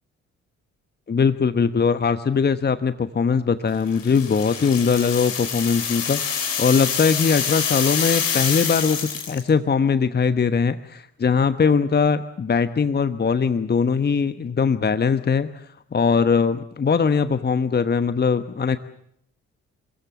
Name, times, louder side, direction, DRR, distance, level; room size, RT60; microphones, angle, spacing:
voice 1, 1.1-9.0 9.3-18.8, left 5 dB, 25° left, 11 dB, 1.2 m, -21 dB
sound 1, 3.9-9.5, left 7 dB, 80° left, 3.3 m, -26 dB
27.5 x 22.0 x 7.1 m, 0.71 s
figure-of-eight pair, 40°, 38 cm